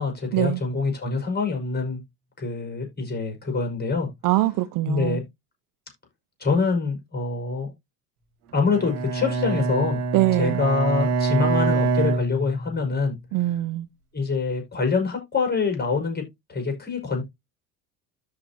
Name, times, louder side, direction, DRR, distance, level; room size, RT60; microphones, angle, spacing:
voice 1, 0.0-2.0 2.4-4.1 4.9-5.2 6.4-7.7 8.5-10.0 10.3-13.2 14.1-16.2 16.5-17.2, left 4 dB, 20° left, 5.2 m, -25 dB
voice 2, 4.2-5.2 10.1-10.6 13.3-13.9, right 16 dB, 45° right, 0.6 m, -23 dB
Bowed string instrument, 8.6-13.0, right 3 dB, 75° right, 2.3 m, -25 dB
13.0 x 4.4 x 2.9 m
hypercardioid pair, 65°, 47 cm